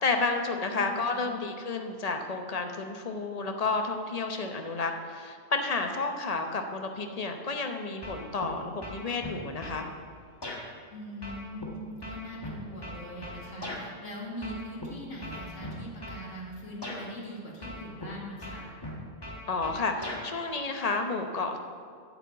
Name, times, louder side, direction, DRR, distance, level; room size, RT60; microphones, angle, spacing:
voice 1, 0.0-9.9 19.5-21.6, left 3 dB, 35° left, 5 dB, 0.9 m, -31 dB
voice 2, 0.6-1.4 10.9-18.7, equal, 80° left, -4 dB, 2.3 m, -41 dB
sound 1, 8.0-8.5 8.8-9.8 10.4-10.6 11.2-13.8 14.4-14.9 15.2-16.2 16.8-17.0 17.6-18.1 18.4-20.2, left 1 dB, 20° left, 1.4 m, -39 dB
9.4 x 6.6 x 7.9 m, 2.1 s
omnidirectional pair, 1.3 m